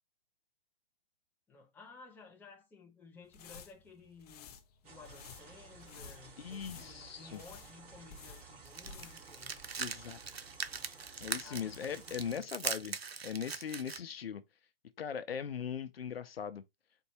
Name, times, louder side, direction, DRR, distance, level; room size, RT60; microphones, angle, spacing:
voice 1, 1.5-4.5 4.8-9.6 11.4-12.5, left 4 dB, 5° left, 0.8 m, -56 dB
sound 1, 3.2-9.3 9.6-9.7, left 6 dB, 40° left, 0.8 m, -53 dB
sound 2, 4.8-12.4, right 4 dB, 40° right, 2.4 m, -55 dB
voice 2, 6.4-7.4 9.8-10.4 11.2-13.0 13.2-14.4 15.0-16.6, left 7 dB, 80° left, 0.6 m, -40 dB
sound 3, 8.6-14.0, right 6 dB, 90° right, 0.7 m, -41 dB
4.6 x 2.7 x 4.1 m
hypercardioid pair, 135°, 30 cm